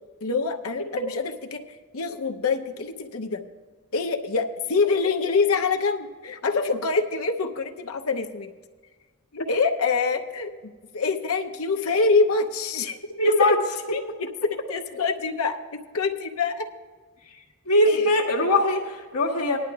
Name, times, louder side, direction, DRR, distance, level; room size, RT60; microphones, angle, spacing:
voice 1, 0.2-1.1 1.5-1.6 1.9-3.4 3.9-8.5 9.3-13.5 13.9-14.0 14.7-16.6 17.9-18.1, left 4 dB, 65° left, 3 dB, 0.8 m, -25 dB
voice 2, 13.1-13.6 17.2-17.4 17.6-19.6, left 1 dB, 90° left, -3 dB, 1.5 m, -21 dB
19.0 x 11.0 x 2.4 m, 1.4 s
head